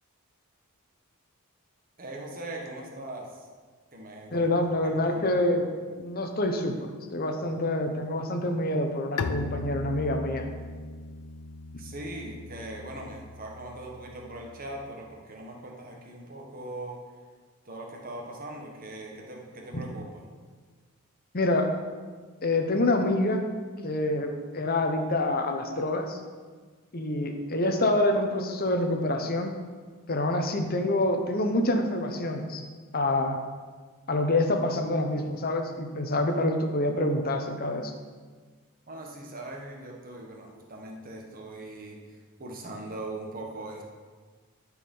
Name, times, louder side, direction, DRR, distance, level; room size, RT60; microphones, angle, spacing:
voice 1, 2.0-3.5 3.9-4.5 4.8-5.4 11.8-17.0 17.6-20.3 38.9-42.0 42.4-43.8, right 1 dB, 40° right, 0 dB, 1.4 m, -40 dB
voice 2, 4.3-5.7 6.0-10.5 11.7-11.8 19.7-19.8 21.3-21.7 22.4-23.5 23.8-26.2 26.9-29.5 30.1-32.6 32.9-33.4 34.1-37.9, left 1 dB, 40° left, 5 dB, 0.9 m, -26 dB
Bowed string instrument, 9.2-14.8, left 4 dB, 80° left, 0.5 m, -38 dB
12.0 x 4.9 x 5.5 m, 1.5 s
head